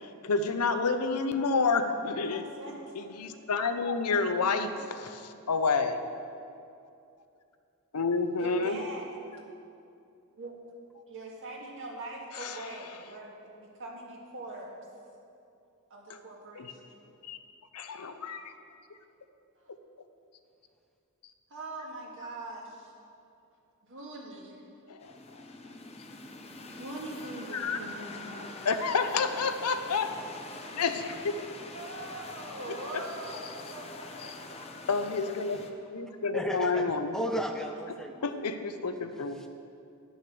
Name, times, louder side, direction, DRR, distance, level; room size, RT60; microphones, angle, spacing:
voice 1, 0.2-2.4 3.0-6.0 7.9-8.8 12.4-12.6 16.6-16.7 17.2-17.4 17.7-18.5 24.9-25.1 27.5-27.8 28.6-30.1 30.7-31.4 32.9-33.0 34.9-35.6 35.9-37.2 38.2-39.4, left 4 dB, 85° left, 9 dB, 0.7 m, -29 dB
voice 2, 2.3-2.8 8.4-9.1 10.3-10.6 11.1-14.7 15.9-17.1 19.6-19.7 21.5-22.9 23.8-24.6 25.3-25.7 26.7-29.0 30.6-30.8 31.7-34.6, right 2 dB, 60° right, -2 dB, 1.9 m, -43 dB
sound 1, 25.0-35.7, left 2 dB, 30° left, 0.8 m, -45 dB
voice 3, 36.3-36.9 37.1-38.3, equal, ahead, 4 dB, 0.4 m, -33 dB
11.0 x 6.3 x 6.9 m, 2.6 s
head